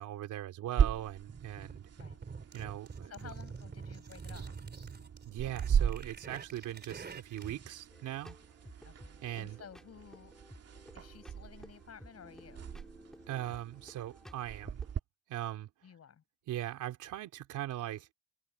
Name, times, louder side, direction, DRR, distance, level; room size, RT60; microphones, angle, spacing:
voice 1, 0.0-1.9 2.5-3.3 5.3-8.4 9.2-9.6 13.3-14.8 15.3-15.7 16.5-18.1, right 13 dB, 85° right, 3.5 m, -40 dB
sound 1, 0.8-15.0, right 8 dB, 55° right, 2.6 m, -38 dB
sound 2, 1.3-7.7, right 5 dB, 35° right, 3.5 m, -47 dB
voice 2, 3.0-4.5 8.8-10.4 10.9-12.8 15.8-16.2, left 8 dB, 55° left, 6.4 m, -53 dB
sound 3, 7.9-14.9, equal, ahead, 4.7 m, -55 dB
cardioid pair, 90°, 30 cm